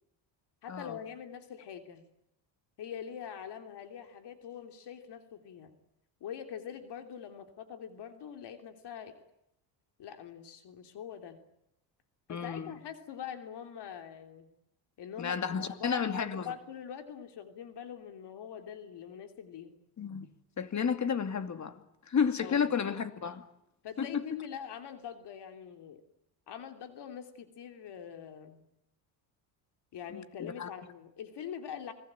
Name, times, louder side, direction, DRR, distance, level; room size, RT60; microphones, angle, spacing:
voice 1, 0.6-2.1 2.8-5.7 6.2-9.2 10.0-11.4 12.3-14.5 15.0-19.7 22.4-22.7 23.8-26.0 26.5-28.7 29.9-31.9, left 8 dB, 65° left, 3.1 m, -44 dB
voice 2, 12.3-12.7 15.2-16.5 20.0-20.3 20.6-21.8 22.1-23.5 24.0-24.3 30.1-30.7, left 7 dB, 40° left, 2.5 m, -32 dB
29.0 x 20.0 x 8.9 m
cardioid pair, 100°, 45 cm